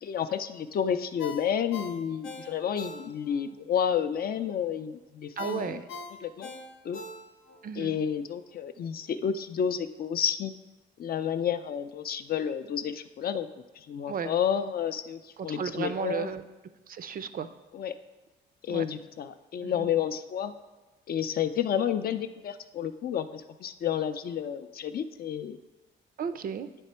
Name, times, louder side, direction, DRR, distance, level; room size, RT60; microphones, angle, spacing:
voice 1, 0.0-5.8 6.2-6.5 6.8-7.0 7.7-10.5 11.0-13.5 13.8-16.3 17.7-18.0 18.6-20.5 21.1-25.6, left 8 dB, 50° left, 10 dB, 0.4 m, -30 dB
Ringtone, 1.2-3.4 3.8-3.9 5.4-7.6 8.0-8.1, left 4 dB, 85° left, 0.8 m, -41 dB
voice 2, 5.4-5.9 7.6-8.0 14.1-14.3 15.4-16.4 16.9-17.5 18.7-18.9 19.6-19.9 26.2-26.7, right 7 dB, 45° right, 11 dB, 0.4 m, -34 dB
9.1 x 3.4 x 4.3 m, 1.2 s
cardioid pair, 90°, 20 cm